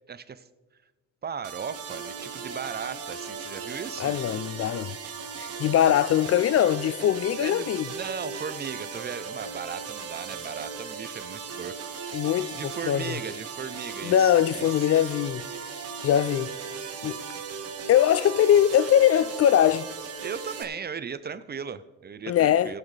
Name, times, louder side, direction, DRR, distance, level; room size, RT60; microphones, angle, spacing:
voice 1, 0.1-0.5 1.2-4.2 7.4-12.3 12.5-14.6 20.2-22.8, right 6 dB, 35° right, 0.6 m, -37 dB
sound 1, 1.4-20.6, right 5 dB, 55° right, 1.6 m, -37 dB
voice 2, 4.0-4.9 5.4-7.9 12.1-13.2 14.0-15.4 16.0-16.5 17.0-17.2 17.9-19.9 22.3-22.7, left 10 dB, 50° left, 0.4 m, -22 dB
17.0 x 8.8 x 3.3 m
cardioid pair, 90°, 30 cm